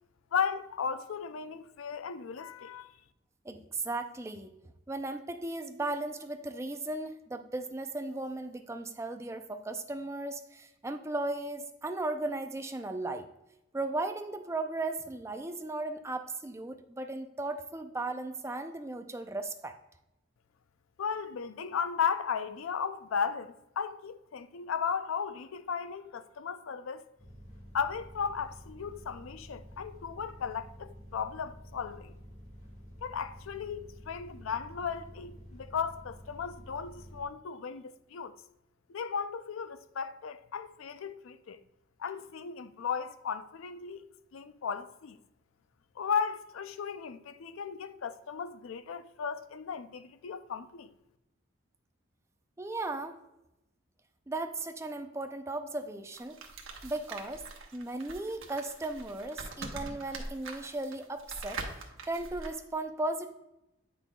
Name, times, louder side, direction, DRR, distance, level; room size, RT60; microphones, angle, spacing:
voice 1, 0.3-2.9 21.0-27.1 27.7-32.1 33.0-38.4 38.9-41.6 42.0-44.0 44.3-45.2 46.0-50.9, left 6 dB, 90° left, 0.4 m, -35 dB
voice 2, 3.4-4.5 4.9-13.3 13.7-19.7 52.6-53.2 54.3-56.4 56.8-57.4 57.7-61.6 62.1-63.3, right 2 dB, 15° right, 0.4 m, -36 dB
sound 1, 27.2-37.2, equal, 35° left, 1.6 m, -50 dB
sound 2, 56.1-62.5, right 3 dB, 85° right, 1.1 m, -43 dB
8.8 x 6.0 x 2.2 m
head